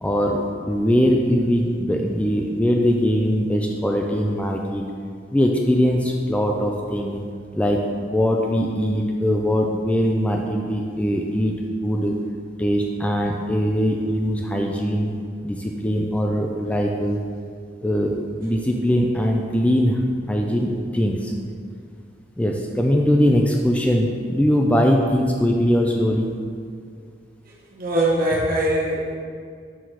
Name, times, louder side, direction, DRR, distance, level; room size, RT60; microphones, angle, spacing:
voice 1, 0.0-4.8 5.3-7.2 7.5-12.1 12.6-15.1 15.4-17.2 17.8-21.3 22.4-26.3, equal, 5° left, 1 dB, 0.3 m, -21 dB
voice 2, 27.8-29.1, right 1 dB, 50° right, -4 dB, 1.2 m, -21 dB
6.2 x 4.1 x 4.5 m, 2.2 s
head